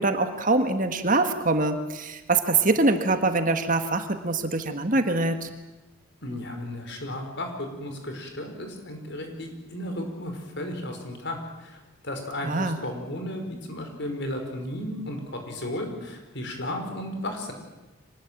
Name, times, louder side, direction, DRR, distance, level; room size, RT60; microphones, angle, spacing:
voice 1, 0.0-5.5 12.4-12.8, right 3 dB, 35° right, 7 dB, 1.7 m, -24 dB
voice 2, 6.2-11.8 12.0-17.5, left 1 dB, 50° left, 4 dB, 5.1 m, -34 dB
25.5 x 19.5 x 9.0 m, 1.1 s
head